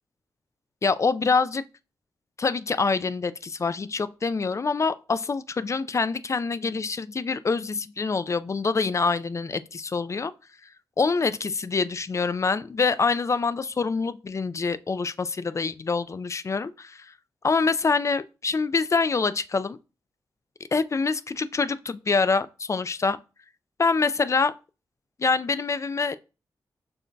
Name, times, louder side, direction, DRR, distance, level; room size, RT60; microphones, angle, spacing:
voice 1, 0.8-1.6 2.4-10.3 11.0-17.1 17.4-19.8 20.7-23.2 23.8-24.5 25.2-26.2, left 4 dB, 35° left, 0.4 m, -25 dB
6.7 x 2.6 x 2.2 m
supercardioid pair, 40°, 8 cm